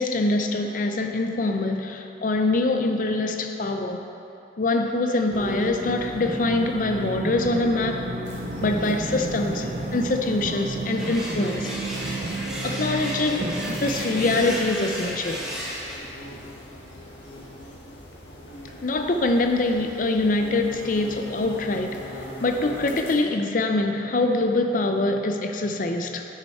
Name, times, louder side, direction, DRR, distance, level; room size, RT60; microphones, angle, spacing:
voice 1, 0.0-4.0 4.6-8.0 8.6-11.7 12.6-15.4 18.8-26.2, left 2 dB, 45° left, 5 dB, 0.5 m, -24 dB
sound 1, 5.3-14.6, right 2 dB, 40° right, 0.5 m, -32 dB
sound 2, 8.2-23.1, left 1 dB, 70° left, 1.4 m, -42 dB
sound 3, 11.0-16.0, equal, 5° right, 1.3 m, -34 dB
10.5 x 6.3 x 4.3 m, 2.8 s
head